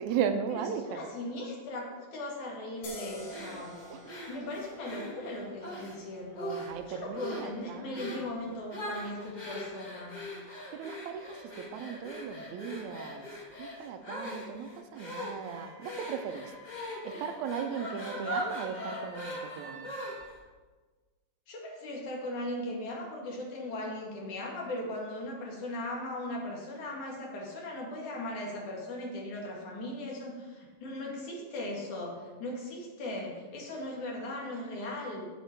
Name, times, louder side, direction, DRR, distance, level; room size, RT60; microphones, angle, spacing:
voice 1, 0.0-1.1 3.9-4.3 6.6-8.1 10.7-13.3 13.6-16.5 17.0-19.9, right 7 dB, 75° right, 8 dB, 1.9 m, -37 dB
voice 2, 0.9-3.7 4.3-6.6 6.9-10.2 21.5-35.3, left 1 dB, 70° left, -2 dB, 3.6 m, -38 dB
sound 1, 2.8-10.1, left 2 dB, 50° left, 2.9 m, -51 dB
sound 2, 3.3-6.0 6.4-6.8 7.2-7.5 7.9-8.3 8.7-20.4, equal, 30° left, 0.8 m, -40 dB
Wind instrument woodwind instrument, 15.2-20.3, right 2 dB, 45° right, 3.2 m, -51 dB
9.3 x 8.1 x 4.5 m, 1.3 s
omnidirectional pair, 3.5 m